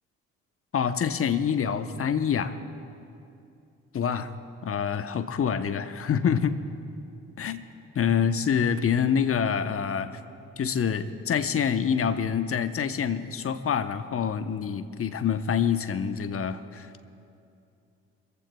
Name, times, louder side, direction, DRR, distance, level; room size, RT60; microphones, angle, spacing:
voice 1, 0.7-2.6 3.9-4.3 4.6-6.6 7.4-7.6 7.9-10.1 10.6-16.9, left 7 dB, 40° left, 10 dB, 1.0 m, -26 dB
24.0 x 14.5 x 2.3 m, 2.6 s
hypercardioid pair, 50°, 35 cm